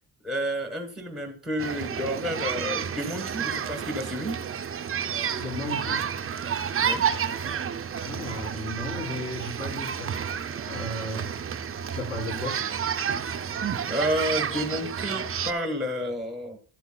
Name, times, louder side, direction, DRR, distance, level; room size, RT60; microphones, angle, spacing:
voice 1, 0.2-4.4 6.8-7.1 13.9-16.6, equal, ahead, 4 dB, 1.2 m, -30 dB
sound 1, 1.6-15.5, right 7 dB, 30° right, 0.4 m, -30 dB
voice 2, 5.4-6.1 8.0-10.2 10.6-11.3 11.9-12.6, left 1 dB, 40° left, -6 dB, 3.2 m, -35 dB
13.0 x 8.1 x 2.2 m, 0.42 s
wide cardioid pair, 150°, 43 cm